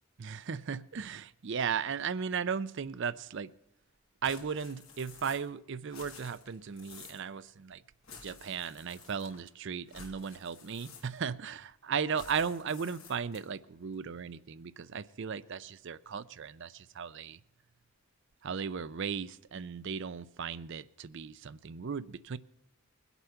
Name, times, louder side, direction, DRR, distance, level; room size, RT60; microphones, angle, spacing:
voice 1, 0.2-3.5 4.2-7.8 8.2-17.4 18.4-22.4, right 6 dB, 55° right, 0.5 m, -36 dB
sound 1, 4.2-5.6 5.8-7.3 8.0-9.5 9.9-11.4 12.1-13.6, left 5 dB, 65° left, 2.7 m, -52 dB
21.0 x 8.1 x 5.8 m
head